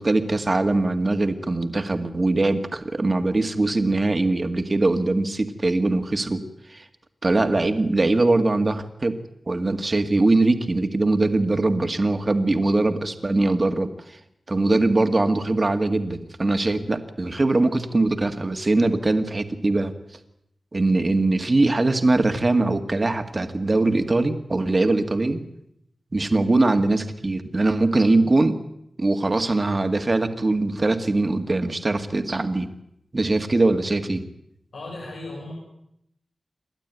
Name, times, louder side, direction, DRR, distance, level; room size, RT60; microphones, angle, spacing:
voice 1, 0.0-6.4 6.7-6.8 7.2-9.2 9.5-14.2 14.5-19.9 20.7-25.4 26.1-28.6 29.0-32.7 33.1-34.2, right 2 dB, 35° right, 8 dB, 2.0 m, -22 dB
voice 2, 34.7-35.5, left 2 dB, 90° left, -4 dB, 6.8 m, -36 dB
28.0 x 12.0 x 9.4 m, 0.77 s
wide cardioid pair, 85°, 0 cm